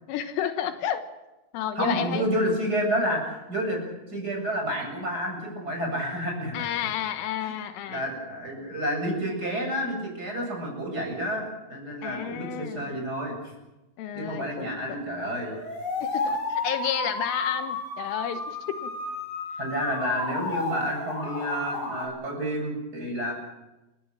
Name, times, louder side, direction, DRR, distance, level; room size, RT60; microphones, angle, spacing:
voice 1, 0.1-1.1 1.5-2.2 6.5-8.0 12.0-13.0 14.0-14.7 15.2-15.3 16.0-18.9, left 10 dB, 80° left, 8 dB, 3.8 m, -31 dB
voice 2, 1.7-3.8 4.1-6.7 7.4-7.5 7.9-13.3 14.1-15.5 19.6-23.3, equal, 20° right, 1 dB, 7.7 m, -29 dB
sound 1, 15.2-22.1, left 2 dB, 30° left, 6.9 m, -32 dB
30.0 x 16.0 x 7.4 m, 1.0 s
omnidirectional pair, 5.6 m